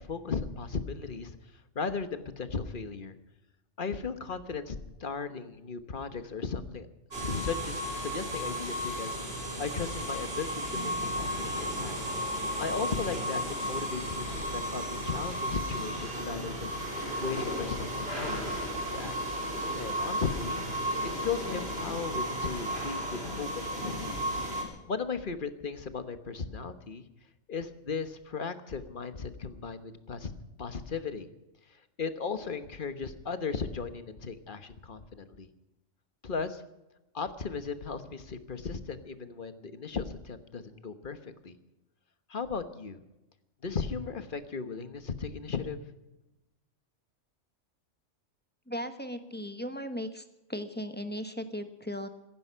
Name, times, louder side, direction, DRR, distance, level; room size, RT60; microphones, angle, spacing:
voice 1, 0.0-1.4 1.7-3.2 3.8-6.9 7.1-9.3 9.6-11.9 12.6-16.8 17.2-18.6 18.9-19.1 19.8-20.7 21.0-24.2 24.9-27.1 27.5-30.3 30.6-31.3 31.7-35.5 36.2-36.6 37.1-41.2 41.4-41.6 42.3-43.0 43.6-45.8, left 5 dB, 45° left, 10 dB, 1.3 m, -36 dB
sound 1, 7.1-24.6, equal, 50° right, 4.0 m, -34 dB
voice 2, 48.7-50.2 50.5-52.1, equal, 10° left, 8 dB, 1.2 m, -37 dB
16.0 x 15.5 x 5.6 m, 0.97 s
omnidirectional pair, 1.3 m